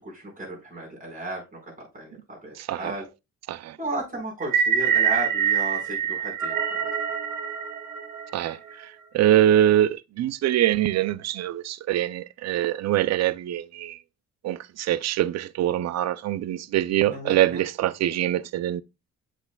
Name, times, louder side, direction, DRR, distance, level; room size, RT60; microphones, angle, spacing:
voice 1, 0.0-3.0 3.8-6.9 17.1-17.6, right 1 dB, 25° right, 4.6 m, -35 dB
voice 2, 2.6-3.0 3.5-3.8 8.3-14.0 14.4-18.8, right 12 dB, 60° right, 0.5 m, -24 dB
sound 1, 4.4-8.7, right 8 dB, 90° right, 1.6 m, -25 dB
8.1 x 5.8 x 2.3 m
cardioid pair, 90°, 30 cm